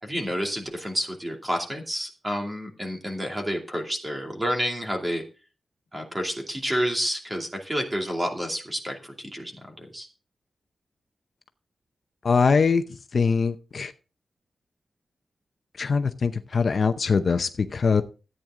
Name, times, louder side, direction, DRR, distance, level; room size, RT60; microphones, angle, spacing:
voice 1, 0.0-5.2 5.9-9.5 9.8-10.1, equal, 15° right, 2.6 m, -29 dB
voice 2, 12.2-12.8 13.1-13.9 15.8-18.0, left 5 dB, 45° left, 0.7 m, -22 dB
14.0 x 8.9 x 3.8 m
wide cardioid pair, 155°, 0 cm